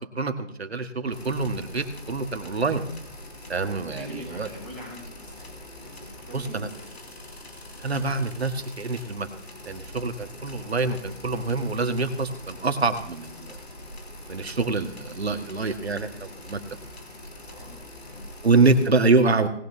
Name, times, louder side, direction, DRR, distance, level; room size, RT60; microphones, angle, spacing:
voice 1, 0.0-2.8 3.5-4.5 6.3-6.7 7.8-9.3 9.6-13.6 14.3-16.6 18.4-19.5, right 3 dB, 60° right, 7 dB, 1.7 m, -25 dB
sound 1, 1.1-18.9, left 1 dB, 60° left, 2.7 m, -43 dB
voice 2, 3.4-6.9 17.5-18.7, left 1 dB, 15° left, -4 dB, 5.5 m, -44 dB
19.0 x 12.0 x 2.8 m, 0.72 s
figure-of-eight pair, 175°, 35 cm